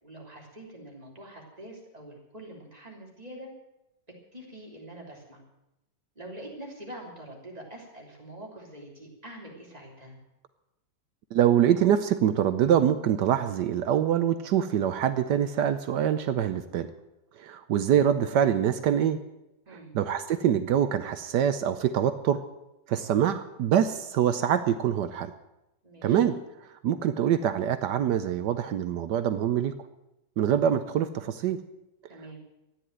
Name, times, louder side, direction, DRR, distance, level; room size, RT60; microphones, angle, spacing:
voice 1, 0.0-3.5 4.3-5.4 6.2-10.2 19.7-19.9 25.8-26.2 32.1-32.4, right 1 dB, 20° right, -1 dB, 3.5 m, -45 dB
voice 2, 11.3-16.9 17.4-19.2 19.9-22.4 22.9-25.3 26.0-26.4 26.8-29.7 30.4-31.6, right 9 dB, 75° right, 10 dB, 1.3 m, -24 dB
13.5 x 9.9 x 9.1 m, 0.89 s
omnidirectional pair, 1.9 m